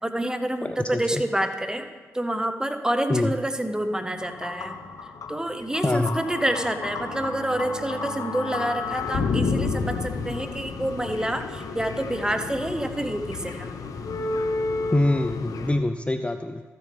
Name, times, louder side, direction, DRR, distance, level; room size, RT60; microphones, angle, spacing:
voice 1, 0.0-1.9 2.1-4.8 5.0-13.7, right 1 dB, 10° right, 7 dB, 1.0 m, -28 dB
voice 2, 0.6-1.2 3.1-3.3 5.8-6.2 14.9-16.6, left 1 dB, 20° left, 8 dB, 0.4 m, -24 dB
sound 1, 4.2-15.8, left 4 dB, 75° left, 0.8 m, -31 dB
Bowed string instrument, 5.4-10.0, right 4 dB, 70° right, 0.8 m, -44 dB
13.5 x 6.7 x 3.5 m, 1.4 s
supercardioid pair, 40°, 6 cm